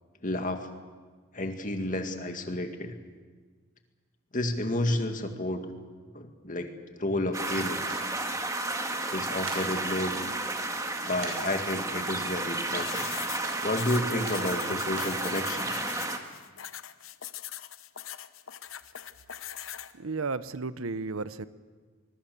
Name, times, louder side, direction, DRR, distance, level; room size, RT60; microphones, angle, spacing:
voice 1, 0.2-0.7 1.3-3.0 4.3-5.6 6.1-7.8 9.1-10.1 11.0-13.1 13.6-15.7, left 1 dB, 40° left, 5 dB, 2.2 m, -31 dB
sound 1, 7.3-16.2, right 2 dB, 15° right, 1.8 m, -32 dB
sound 2, 7.9-8.0 9.2-9.6 10.2-10.3 11.2-11.4 11.7-11.8 12.7-12.9 13.4-13.6 14.3-14.4 15.0-15.1 15.6-15.8, right 3 dB, 70° right, 6.6 m, -40 dB
sound 3, 12.8-19.9, left 11 dB, 75° left, 0.9 m, -42 dB
voice 2, 19.9-21.5, right 4 dB, 90° right, 14 dB, 0.9 m, -33 dB
25.0 x 21.5 x 6.9 m, 1.5 s
head